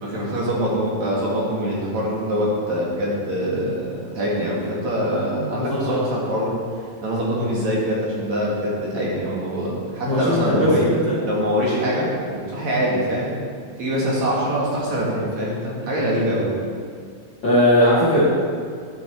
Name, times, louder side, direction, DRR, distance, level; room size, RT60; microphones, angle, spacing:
voice 1, 0.0-6.5 7.0-10.9 11.3-13.3 13.8-16.5, equal, 55° right, -6 dB, 3.3 m, -24 dB
voice 2, 5.5-6.0 10.0-11.0 17.4-18.2, left 1 dB, 40° left, -8 dB, 2.0 m, -19 dB
11.5 x 10.0 x 4.7 m, 2.2 s
omnidirectional pair, 4.2 m